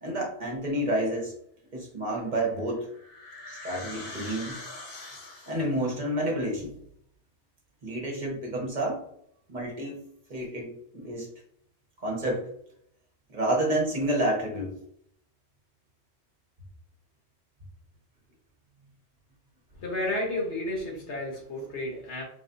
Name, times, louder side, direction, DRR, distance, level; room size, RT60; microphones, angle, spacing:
voice 1, 0.0-1.3 1.7-2.9 3.5-4.6 5.5-6.7 7.8-9.0 9.5-10.0 10.3-11.3 12.0-12.5 13.3-14.8, right 1 dB, 45° right, -2 dB, 1.0 m, -29 dB
sound 1, 2.5-5.8, left 2 dB, 55° left, 1.1 m, -43 dB
voice 2, 19.7-22.2, left 1 dB, 80° left, -1 dB, 1.4 m, -32 dB
3.4 x 3.1 x 2.6 m, 0.70 s
omnidirectional pair, 1.1 m